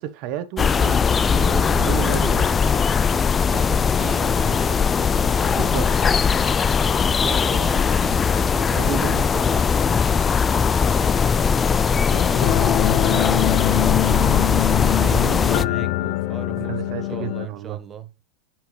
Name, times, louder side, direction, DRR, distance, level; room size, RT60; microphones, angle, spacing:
voice 1, 0.0-2.8 5.5-5.9 8.8-9.4 14.9-15.3 16.6-17.8, right 10 dB, 50° right, 1.1 m, -32 dB
sound 1, 0.6-15.6, left 6 dB, 20° left, 0.4 m, -19 dB
voice 2, 3.3-6.1 7.0-18.1, right 7 dB, 25° right, 1.3 m, -38 dB
sound 2, 12.1-17.5, left 15 dB, 55° left, 0.7 m, -24 dB
9.4 x 4.6 x 3.3 m
hypercardioid pair, 115°, 0 cm